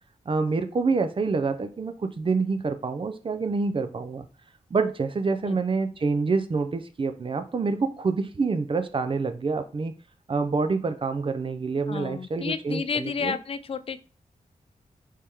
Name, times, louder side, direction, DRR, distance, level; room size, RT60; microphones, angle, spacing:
voice 1, 0.3-4.3 4.7-9.9 10.3-13.4, right 4 dB, 40° right, 9 dB, 0.5 m, -27 dB
voice 2, 11.9-14.0, left 6 dB, 45° left, 14 dB, 0.4 m, -31 dB
4.3 x 3.3 x 3.4 m, 0.37 s
wide cardioid pair, 90°, 14 cm